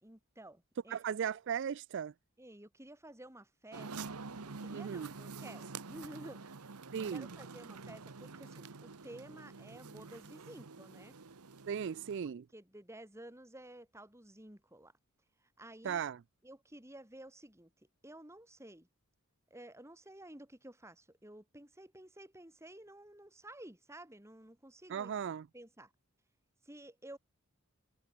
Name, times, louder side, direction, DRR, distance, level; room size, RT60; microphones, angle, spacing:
voice 1, 0.0-1.0 2.4-4.2 4.4-6.6 7.1-11.1 12.5-14.9 15.6-16.0 16.4-17.7 18.0-18.9 19.5-25.2 25.5-25.9 26.6-27.2, right 1 dB, 10° right, 2.9 m, -52 dB
voice 2, 0.9-2.1 4.7-5.1 6.9-7.3 11.7-12.4 15.8-16.2 24.9-25.5, right 7 dB, 55° right, 0.3 m, -37 dB
sound 1, 3.7-12.2, right 4 dB, 90° right, 1.1 m, -47 dB
head